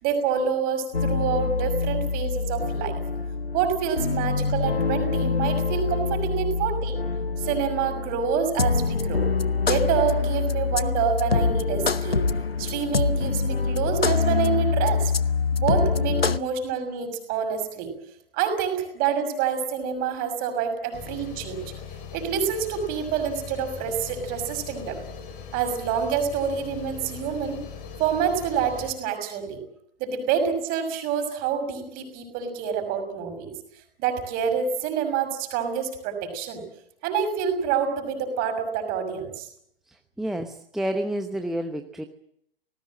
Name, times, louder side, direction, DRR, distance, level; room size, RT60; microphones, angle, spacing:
voice 1, 0.0-2.9 3.5-7.0 7.4-9.3 9.7-12.2 12.6-15.1 15.5-17.9 18.3-21.6 22.1-25.0 25.5-27.6 28.0-29.6 30.0-33.5 34.0-36.6 37.0-39.5, right 7 dB, 30° right, 7 dB, 6.3 m, -27 dB
sound 1, 0.9-16.4, left 4 dB, 85° left, 0.9 m, -25 dB
sound 2, 20.9-28.9, left 6 dB, 30° left, 4.5 m, -40 dB
voice 2, 39.9-42.0, right 1 dB, ahead, 5 dB, 0.9 m, -30 dB
26.0 x 19.0 x 7.7 m, 0.73 s
figure-of-eight pair, 115°, 29 cm